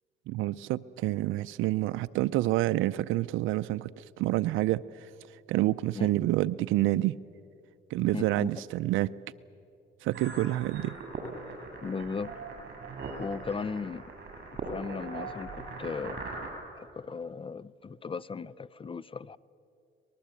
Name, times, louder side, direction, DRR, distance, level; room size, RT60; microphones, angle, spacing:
voice 1, 0.3-7.1 7.9-9.1 10.0-10.9, right 16 dB, 90° right, 14 dB, 0.5 m, -28 dB
voice 2, 8.1-8.5 11.8-12.3 13.2-14.0 14.7-16.2 16.8-19.4, left 5 dB, 25° left, 20 dB, 0.5 m, -36 dB
sound 1, 10.1-16.5, right 3 dB, 55° right, 6.8 m, -40 dB
24.0 x 19.5 x 8.3 m, 2.6 s
cardioid pair, 90°, 20 cm